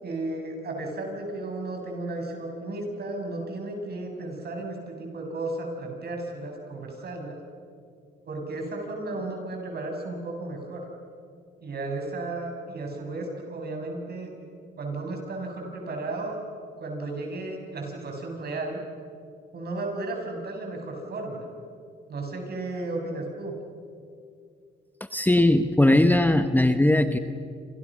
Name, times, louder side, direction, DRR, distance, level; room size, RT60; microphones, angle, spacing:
voice 1, 0.0-7.4 8.3-10.8 11.6-14.3 14.8-16.4 16.8-18.8 19.5-21.5 22.1-23.5, right 2 dB, 55° right, 2 dB, 7.4 m, -34 dB
voice 2, 25.1-27.2, left 1 dB, 10° left, 8 dB, 1.2 m, -19 dB
28.5 x 28.0 x 6.4 m, 2.3 s
cardioid pair, 90°, 20 cm